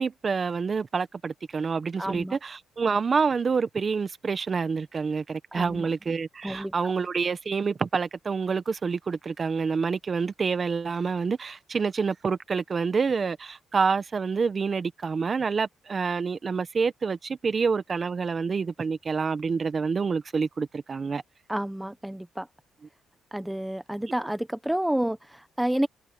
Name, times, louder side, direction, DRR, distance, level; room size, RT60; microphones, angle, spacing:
voice 1, 0.0-21.2, right 5 dB, 40° right, 1.1 m, -27 dB
voice 2, 2.0-2.4 5.5-5.9 6.4-6.9 21.5-22.5 23.3-25.9, right 1 dB, 5° right, 1.2 m, -30 dB
cardioid pair, 90°, 0 cm